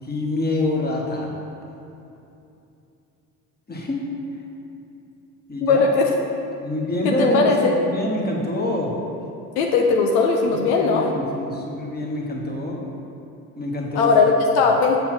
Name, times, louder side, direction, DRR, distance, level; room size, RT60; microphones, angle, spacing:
voice 1, 0.0-1.3 3.7-4.1 5.5-5.9 6.6-9.0 10.5-12.8 13.6-14.2, left 1 dB, 20° left, -1 dB, 1.6 m, -26 dB
voice 2, 5.6-6.1 7.0-7.7 9.6-11.1 13.9-15.0, left 4 dB, 75° left, 1 dB, 0.8 m, -18 dB
7.3 x 4.4 x 6.2 m, 2.7 s
hypercardioid pair, 60°, 45 cm